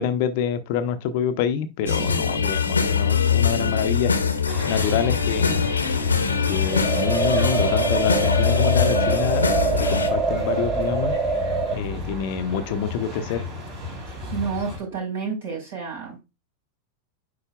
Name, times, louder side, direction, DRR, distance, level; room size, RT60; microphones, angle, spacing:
voice 1, 0.0-4.1 4.6-5.7 6.5-9.6 9.9-11.2 11.7-13.4, left 8 dB, 50° left, 0.7 m, -27 dB
sound 1, 1.9-10.1, left 6 dB, 75° left, 0.9 m, -22 dB
voice 2, 1.9-2.3 14.3-16.2, right 5 dB, 60° right, 4.3 m, -30 dB
sound 2, 4.5-14.8, left 2 dB, 45° right, 4.1 m, -33 dB
sound 3, 6.7-11.7, right 4 dB, 15° right, 0.9 m, -25 dB
9.7 x 4.2 x 2.3 m
figure-of-eight pair, 90°, 0 cm